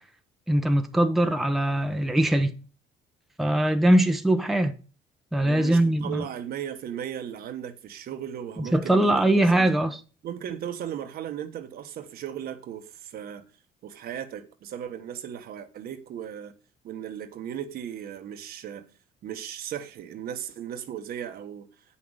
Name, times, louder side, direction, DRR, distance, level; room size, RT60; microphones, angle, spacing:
voice 1, 0.5-2.5 3.4-4.7 5.3-6.2 8.7-10.0, right 1 dB, ahead, 0.9 m, -21 dB
voice 2, 5.4-9.7 10.2-13.4 13.8-16.5 16.8-18.9 19.2-21.7, right 9 dB, 65° right, 1.3 m, -36 dB
8.5 x 5.8 x 6.4 m
cardioid pair, 110°, 17 cm